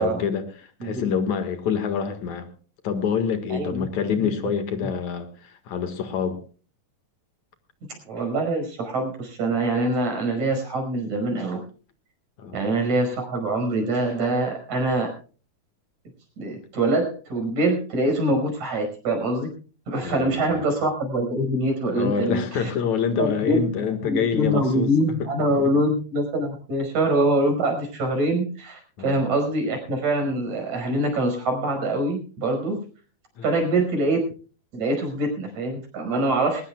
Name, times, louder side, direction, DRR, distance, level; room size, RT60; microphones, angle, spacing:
voice 1, 0.0-2.5 2.8-6.4 12.4-12.6 20.0-20.6 22.0-24.9 25.6-25.7 29.0-29.2 33.4-33.5, left 7 dB, 65° left, 2.9 m, -26 dB
voice 2, 0.8-1.1 3.5-3.9 4.1-4.3 4.8-4.9 7.9-11.6 12.5-15.1 16.4-19.5 19.9-22.7 23.2-23.6 24.0-32.8 33.4-34.2 34.7-36.6, right 1 dB, 65° right, 6.5 m, -24 dB
21.5 x 18.5 x 2.3 m
omnidirectional pair, 3.6 m